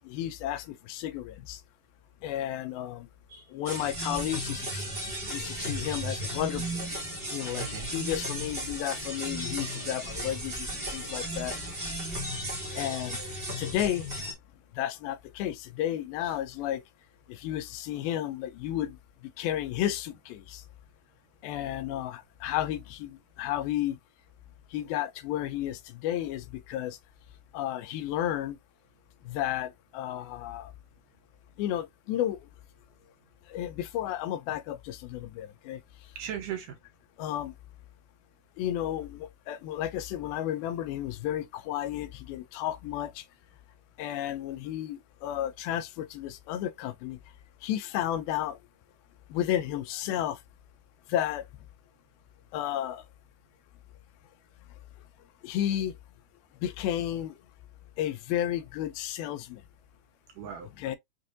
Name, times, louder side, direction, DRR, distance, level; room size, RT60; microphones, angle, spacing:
voice 1, 0.1-1.6 2.2-3.1 3.5-4.9 5.3-6.9 7.3-11.6 12.8-13.2 13.6-14.1 14.8-16.8 17.3-19.0 19.4-20.6 21.4-24.0 24.7-27.0 27.5-28.6 29.3-30.7 31.6-32.4 33.5-35.8 37.2-37.5 38.6-43.2 44.0-47.2 47.6-48.6 49.3-50.4 51.1-51.4 52.5-53.0 55.4-55.9 56.6-57.3 58.0-59.6 60.8-61.0, left 12 dB, 85° left, 2.4 m, -32 dB
sound 1, 3.6-14.3, equal, 35° right, 0.9 m, -35 dB
voice 2, 7.6-7.9 11.0-11.4 16.2-16.4 36.2-36.8 60.3-60.7, right 9 dB, 75° right, 2.1 m, -39 dB
6.6 x 2.6 x 2.5 m
omnidirectional pair, 4.4 m